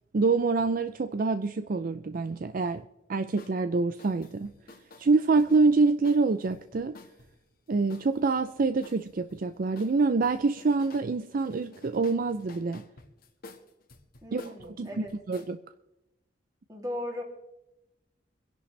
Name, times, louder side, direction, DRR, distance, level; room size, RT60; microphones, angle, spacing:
voice 1, 0.1-2.8 3.1-4.5 5.0-7.0 7.7-12.8 14.3-15.6, right 3 dB, 50° right, 10 dB, 0.4 m, -26 dB
sound 1, 3.4-3.6 4.0-7.3 7.9-9.4 9.7-11.1 11.4-15.5, left 2 dB, 55° left, 1.6 m, -51 dB
voice 2, 14.2-15.1 16.7-17.2, left 1 dB, 20° right, 0 dB, 2.7 m, -37 dB
25.0 x 11.0 x 3.3 m, 0.94 s
head